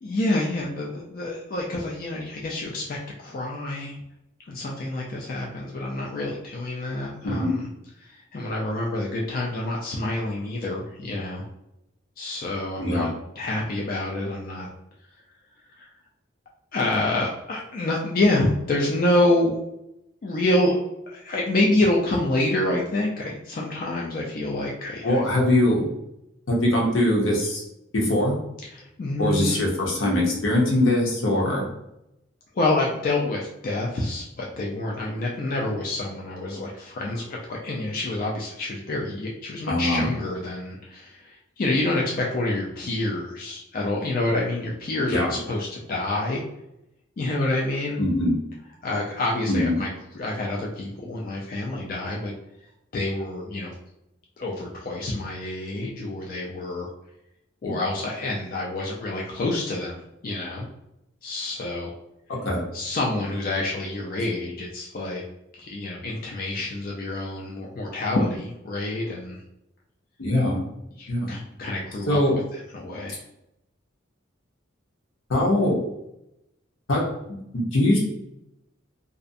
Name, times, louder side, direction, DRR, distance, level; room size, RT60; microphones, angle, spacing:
voice 1, 0.0-4.0 4.5-7.7 8.0-11.4 12.2-13.1 13.4-14.7 15.8-15.9 16.7-19.5 20.2-20.8 21.1-25.2 28.6-29.6 32.5-46.4 47.2-48.0 48.8-49.9 50.1-52.3 52.9-53.7 54.4-56.9 57.6-60.7 61.2-61.9 62.7-65.2 65.5-69.4 71.0-72.2 72.5-73.2, left 2 dB, 45° left, -2 dB, 0.3 m, -27 dB
voice 2, 7.2-7.6 12.8-13.1 25.0-25.9 26.5-27.6 27.9-28.3 29.2-31.6 39.7-40.1 45.1-45.3 48.0-48.3 49.5-49.8 57.6-57.7 62.4-62.6 70.2-70.6 71.1-71.4 72.1-72.4 75.3-75.8 76.9-78.0, left 1 dB, 85° left, -2 dB, 0.8 m, -22 dB
2.4 x 2.0 x 2.5 m, 0.84 s
head